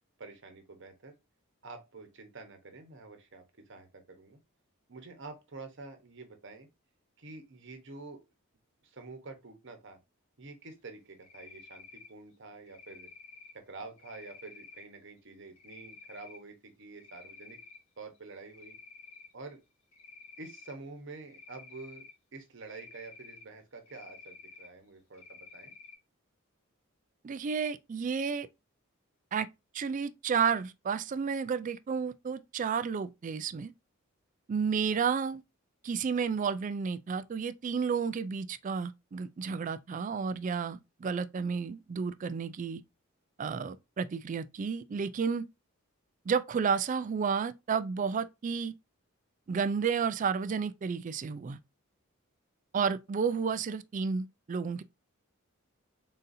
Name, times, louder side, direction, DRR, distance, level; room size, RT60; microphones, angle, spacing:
voice 1, 0.2-1.1 1.6-4.4 4.9-6.7 7.2-8.2 8.8-10.0 10.4-13.1 13.5-17.6 18.0-18.8 19.3-19.6 20.4-22.0 22.3-25.7, right 3 dB, 60° right, 1.0 m, -48 dB
Cricket, 11.2-12.1 12.7-13.5 14.0-14.8 15.6-16.4 16.8-17.8 18.2-19.3 19.9-20.7 21.3-22.1 22.6-23.4 23.9-24.7 25.1-26.0, left 4 dB, 70° left, 1.6 m, -51 dB
voice 2, 27.2-28.5 29.3-29.5 29.7-33.7 34.5-35.4 35.8-42.8 43.4-45.5 46.3-48.7 49.5-51.6 52.7-54.8, right 6 dB, 35° right, 0.3 m, -31 dB
4.0 x 3.9 x 2.6 m
head